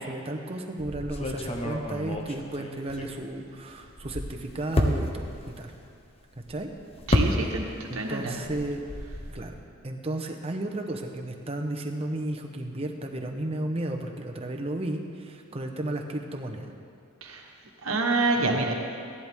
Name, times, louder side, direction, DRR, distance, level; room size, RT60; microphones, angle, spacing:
voice 1, 0.1-5.7 6.5-6.7 7.9-8.8 9.3-9.6 9.8-16.7 18.4-18.5, right 1 dB, 30° right, 3 dB, 0.8 m, -33 dB
sound 1, 0.8-3.5 3.8-7.9 8.2-9.5, left 1 dB, 30° left, 0.9 m, -30 dB
voice 2, 7.1-8.4 17.2-17.4 17.8-18.7, right 2 dB, 80° right, 1 dB, 1.3 m, -27 dB
15.0 x 11.0 x 3.6 m, 2.4 s
head